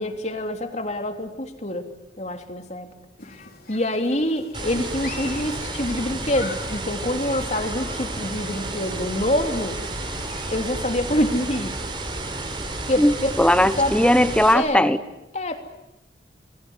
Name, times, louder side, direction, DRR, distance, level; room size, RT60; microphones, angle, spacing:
voice 1, 0.0-1.9 2.2-2.9 3.3-3.4 3.7-9.8 10.5-11.8 12.9-13.3 13.8-13.9 14.5-14.9 15.3-15.6, left 1 dB, 40° left, 6 dB, 3.1 m, -26 dB
Human group actions, 3.2-10.8, left 4 dB, 55° left, 4.4 m, -42 dB
sound 1, 4.5-14.5, right 2 dB, 25° right, 4.5 m, -31 dB
voice 2, 13.0-15.0, left 1 dB, 5° left, 12 dB, 1.1 m, -18 dB
29.0 x 20.5 x 9.9 m, 0.93 s
head